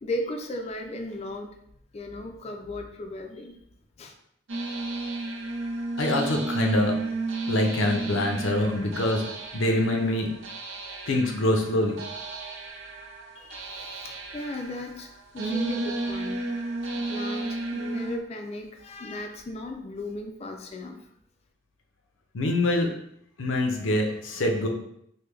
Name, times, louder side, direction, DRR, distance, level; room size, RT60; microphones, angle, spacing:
voice 1, 0.0-1.5 1.9-3.6 4.0-4.1 13.4-16.5 17.1-21.0, left 1 dB, 35° left, 4 dB, 0.3 m, -36 dB
sound 1, 4.5-18.2, right 2 dB, 75° right, 0.5 m, -33 dB
voice 2, 6.0-6.9 7.5-9.2 9.5-10.3 11.1-12.0 22.3-22.9 23.4-24.7, left 1 dB, 80° left, 3 dB, 0.6 m, -24 dB
3.2 x 2.1 x 3.4 m, 0.73 s
head